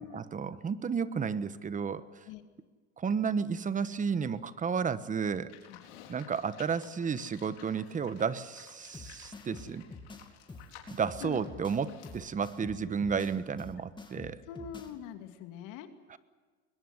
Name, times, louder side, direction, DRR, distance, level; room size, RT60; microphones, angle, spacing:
voice 1, 0.0-2.2 3.0-5.5 6.1-9.8 10.9-14.4 16.1-16.2, right 6 dB, 25° right, 14 dB, 1.2 m, -32 dB
Livestock farm animals working animals, 5.5-12.2, left 9 dB, 80° left, 4.4 m, -55 dB
sound 1, 8.9-14.9, left 3 dB, 15° left, 2.6 m, -47 dB
voice 2, 14.5-15.9, left 8 dB, 65° left, 7 dB, 2.5 m, -43 dB
22.0 x 21.0 x 8.0 m, 1.4 s
supercardioid pair, 110°, 34 cm